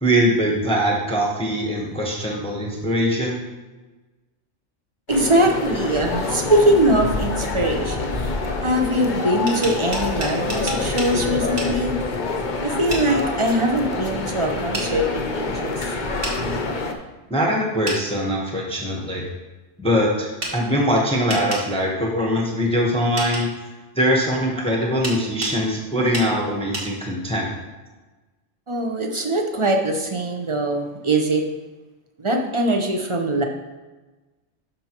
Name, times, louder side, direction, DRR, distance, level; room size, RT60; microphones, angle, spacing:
voice 1, 0.0-3.4 17.3-19.2 19.8-23.5 23.9-27.5, equal, 5° left, -2 dB, 1.0 m, -22 dB
sound 1, 5.1-16.9, left 3 dB, 45° left, 0.8 m, -26 dB
voice 2, 5.1-8.2 8.6-12.0 12.6-15.8 28.7-31.4 32.2-33.4, right 1 dB, 30° right, 3 dB, 0.8 m, -22 dB
sound 2, 9.5-11.1 11.6-11.7 12.9-13.1 14.7-14.9 16.2-16.4 17.9-18.0 20.4-20.6 21.3-21.7 23.2-23.5 25.0-25.6 26.1-26.3 26.7-26.9, right 2 dB, 50° right, 1.6 m, -29 dB
12.0 x 5.5 x 3.0 m, 1.2 s
omnidirectional pair, 1.3 m